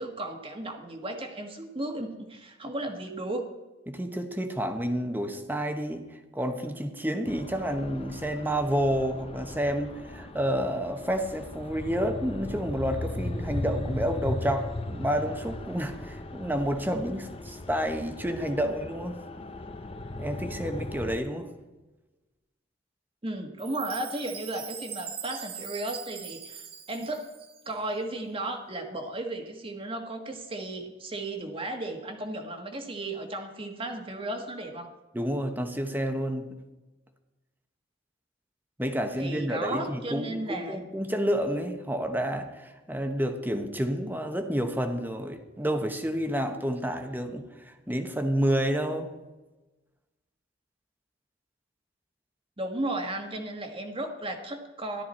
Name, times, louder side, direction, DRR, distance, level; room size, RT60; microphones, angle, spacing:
voice 1, 0.0-3.5 23.2-27.3 27.6-34.9 39.2-40.8 52.6-55.0, right 1 dB, 30° right, 4 dB, 1.5 m, -34 dB
voice 2, 3.9-19.2 20.2-21.5 35.1-36.5 38.8-49.1, equal, 10° right, 6 dB, 1.1 m, -30 dB
sound 1, 7.3-21.2, left 2 dB, 30° left, 0.7 m, -37 dB
Chime, 23.6-27.8, right 8 dB, 55° right, 1.4 m, -42 dB
13.5 x 12.5 x 4.3 m, 1.1 s
head